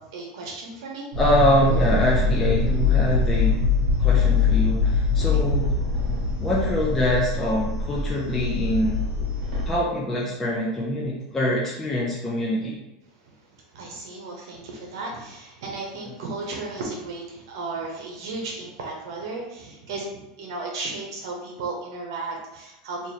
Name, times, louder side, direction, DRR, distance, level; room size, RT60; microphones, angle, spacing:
voice 1, 0.1-1.1 5.9-6.4 9.3-9.7 13.3-13.4 13.7-23.1, right 3 dB, 75° right, -1 dB, 0.9 m, -35 dB
sound 1, 1.1-9.7, left 4 dB, 55° right, 1.3 m, -23 dB
voice 2, 1.2-3.6 4.0-5.7 6.4-9.0 9.7-12.8, left 1 dB, 10° left, -5 dB, 0.5 m, -24 dB
3.0 x 2.6 x 4.0 m, 0.94 s
supercardioid pair, 165°, 2 cm